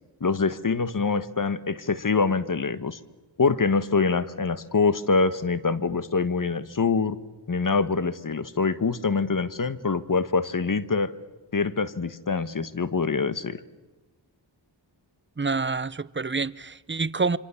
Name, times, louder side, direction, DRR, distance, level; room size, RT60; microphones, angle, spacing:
voice 1, 0.2-3.0 3.4-7.2 7.5-11.1 11.5-13.6, left 4 dB, 45° left, 1.4 m, -25 dB
voice 2, 15.4-17.4, right 4 dB, 25° right, 0.8 m, -27 dB
26.5 x 25.5 x 7.2 m
cardioid pair, 40°, 45 cm